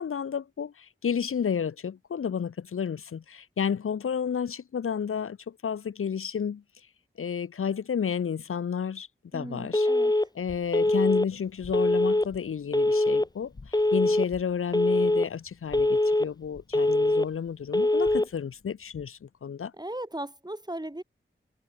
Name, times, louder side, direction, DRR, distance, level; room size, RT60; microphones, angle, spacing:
voice 1, 0.0-6.6 7.2-9.1 9.3-9.9 10.3-19.7, left 7 dB, 85° left, 0.7 m, -31 dB
voice 2, 9.3-10.1 19.8-21.0, right 1 dB, 20° right, 5.9 m, -37 dB
Telephone, 9.7-10.3 10.7-11.3 11.7-12.3 12.7-13.3 13.7-14.3 14.7-15.3 15.7-16.3 16.7-17.3 17.7-18.3, left 1 dB, 20° left, 1.6 m, -23 dB
sound 1, 10.4-19.3, left 3 dB, 60° left, 7.7 m, -53 dB
cardioid pair, 50°, 21 cm